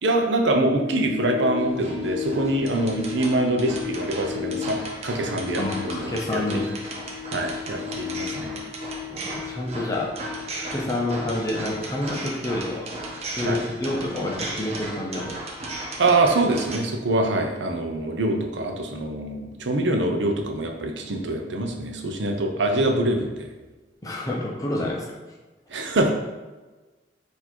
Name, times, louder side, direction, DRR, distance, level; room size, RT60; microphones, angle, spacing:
voice 1, 0.0-6.4 7.3-8.6 13.4-13.6 16.0-23.5 25.7-26.1, right 2 dB, 90° right, 2 dB, 0.6 m, -24 dB
sound 1, 0.7-17.3 17.6-17.7, left 9 dB, 70° left, 0.4 m, -37 dB
sound 2, 1.6-16.8, right 2 dB, 35° right, 0.6 m, -36 dB
voice 2, 5.6-6.7 9.2-10.1 10.5-12.9 13.3-15.4 24.0-25.2, left 1 dB, 20° left, -2 dB, 0.7 m, -28 dB
4.4 x 2.7 x 4.4 m, 1.2 s
head